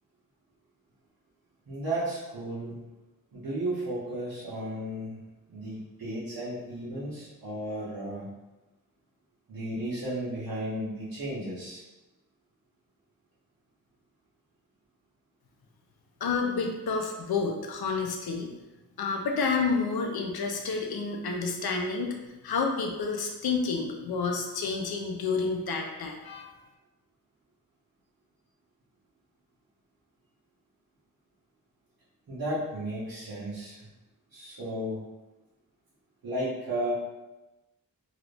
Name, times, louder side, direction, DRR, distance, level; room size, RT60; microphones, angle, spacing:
voice 1, 1.7-2.8 3.3-5.2 5.5-8.3 9.5-11.8 32.3-33.8 34.3-35.0 36.2-36.9, right 1 dB, 70° right, -11 dB, 1.1 m, -34 dB
voice 2, 16.2-18.5 19.0-22.2 22.4-26.5, left 4 dB, 80° left, 2 dB, 0.6 m, -29 dB
3.0 x 2.5 x 3.3 m, 1.0 s
cardioid pair, 65°, 37 cm